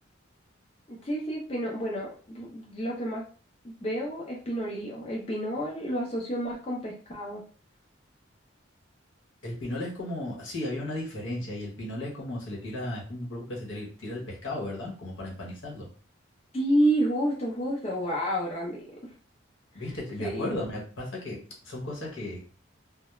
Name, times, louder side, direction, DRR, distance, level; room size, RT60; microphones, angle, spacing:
voice 1, 0.9-3.2 3.6-7.4 16.5-19.1 20.2-20.6, right 1 dB, 30° left, -4 dB, 0.5 m, -30 dB
voice 2, 9.4-15.9 19.7-22.4, left 1 dB, 75° left, -3 dB, 0.9 m, -35 dB
2.3 x 2.0 x 2.9 m, 0.40 s
head